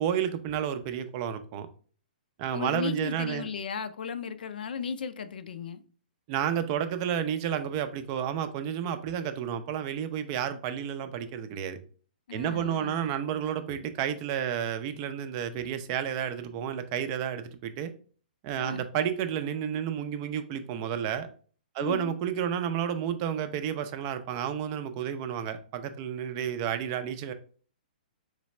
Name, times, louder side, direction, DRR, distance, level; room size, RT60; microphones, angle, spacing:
voice 1, 0.0-1.7 2.4-3.5 6.3-11.8 12.3-17.9 18.4-21.3 21.7-27.3, right 9 dB, 35° right, 0.4 m, -31 dB
voice 2, 2.5-5.8 12.3-13.0 18.6-18.8 21.8-22.1, left 6 dB, 75° left, 0.4 m, -35 dB
3.9 x 3.1 x 3.2 m
hypercardioid pair, 145°, 5 cm